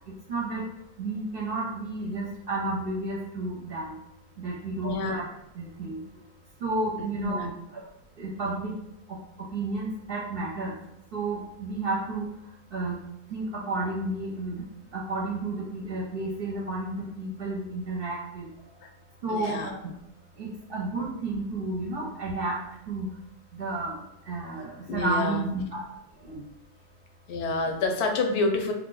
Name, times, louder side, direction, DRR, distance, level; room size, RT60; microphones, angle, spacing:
voice 1, 0.1-0.7 1.0-4.0 4.4-5.2 5.5-6.0 6.6-7.8 8.2-8.7 9.1-10.8 11.1-18.7 19.2-19.9 20.3-23.2 23.5-25.8 26.1-26.5, right 2 dB, 60° right, -4 dB, 0.8 m, -32 dB
voice 2, 4.8-5.2 7.2-7.5 18.8-18.9 19.3-19.7 24.9-25.4 27.3-28.7, left 3 dB, 70° left, 4 dB, 0.9 m, -28 dB
3.1 x 2.5 x 3.8 m, 0.80 s
omnidirectional pair, 1.2 m